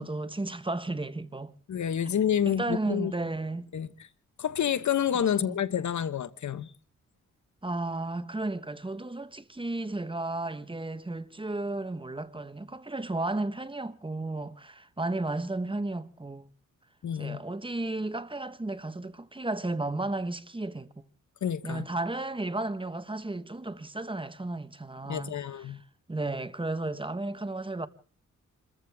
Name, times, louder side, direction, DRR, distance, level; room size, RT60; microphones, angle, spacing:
voice 1, 0.0-1.5 2.5-3.7 5.4-5.6 7.6-16.5 17.2-21.0 21.6-25.8 26.1-27.9, right 2 dB, 15° right, 1.2 m, -33 dB
voice 2, 1.7-3.1 3.7-3.9 4.4-6.7 17.0-17.4 21.4-21.9 25.0-25.8, left 9 dB, 70° left, 1.1 m, -28 dB
28.5 x 14.5 x 3.5 m
cardioid pair, 80°, 31 cm